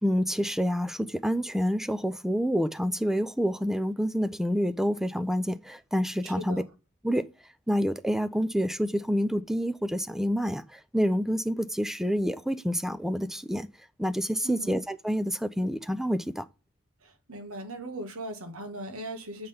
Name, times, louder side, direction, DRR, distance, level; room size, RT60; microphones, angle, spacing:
voice 1, 0.0-6.6 7.0-7.3 7.7-13.7 14.0-16.4, equal, ahead, 0.4 m, -28 dB
voice 2, 6.2-6.6 14.4-14.8 17.0-19.5, right 1 dB, 80° right, 1.6 m, -39 dB
7.9 x 3.8 x 6.8 m
head